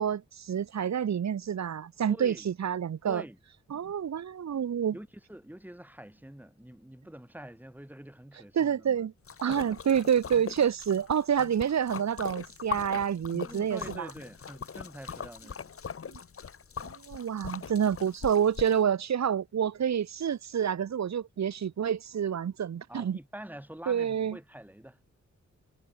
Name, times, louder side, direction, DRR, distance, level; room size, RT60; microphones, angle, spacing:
voice 1, 0.0-3.2 3.7-4.9 8.5-9.1 9.4-14.1 16.1-16.2 16.8-23.2 23.9-24.4, right 8 dB, 65° right, 1.2 m, -28 dB
voice 2, 2.1-2.5 3.0-3.4 4.9-9.1 9.5-10.0 13.5-15.7 22.9-25.0, right 1 dB, 5° right, 7.1 m, -46 dB
Splash splatter, 9.3-18.8, left 6 dB, 50° left, 1.2 m, -41 dB
cardioid pair, 80°, 30 cm